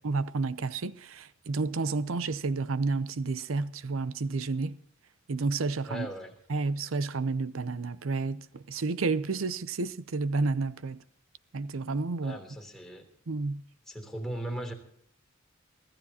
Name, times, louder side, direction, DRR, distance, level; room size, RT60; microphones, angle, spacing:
voice 1, 0.0-4.8 5.3-6.1 6.5-11.0 11.5-12.4 13.3-13.6, right 3 dB, 85° right, 0.6 m, -30 dB
voice 2, 5.9-6.3 12.2-13.1 13.8-14.7, right 1 dB, ahead, 3.2 m, -38 dB
24.5 x 15.0 x 2.9 m
head